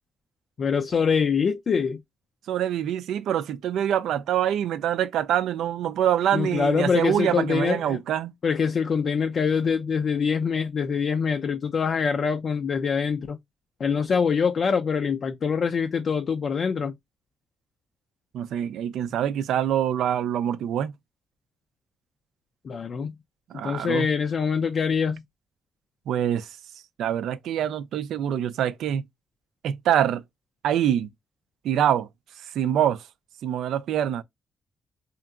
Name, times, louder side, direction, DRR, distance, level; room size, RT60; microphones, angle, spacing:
voice 1, 0.6-2.0 6.3-8.0 8.4-13.4 13.8-16.9 22.6-23.1 23.6-25.2, left 6 dB, 55° left, 0.3 m, -24 dB
voice 2, 2.5-8.3 18.3-20.9 23.5-24.1 26.1-26.5 27.0-29.0 29.6-30.2 30.6-31.1 31.6-32.1 32.5-33.0 33.4-34.2, right 10 dB, 85° right, 0.3 m, -25 dB
2.8 x 2.4 x 2.3 m
cardioid pair, 75°, 0 cm